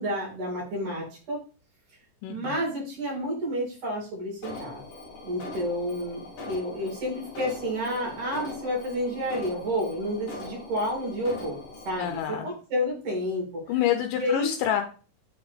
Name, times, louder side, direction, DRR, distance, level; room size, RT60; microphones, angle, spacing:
voice 1, 0.0-1.4 2.3-4.8 5.2-11.6 11.9-13.4 14.2-14.5, equal, 70° right, -3 dB, 4.5 m, -30 dB
voice 2, 2.2-2.6 12.0-12.5 13.7-14.8, left 11 dB, 80° left, 5 dB, 2.2 m, -27 dB
Alarm, 4.4-12.2, left 2 dB, 55° left, 1.9 m, -41 dB
7.8 x 3.6 x 3.5 m, 0.38 s
omnidirectional pair, 3.9 m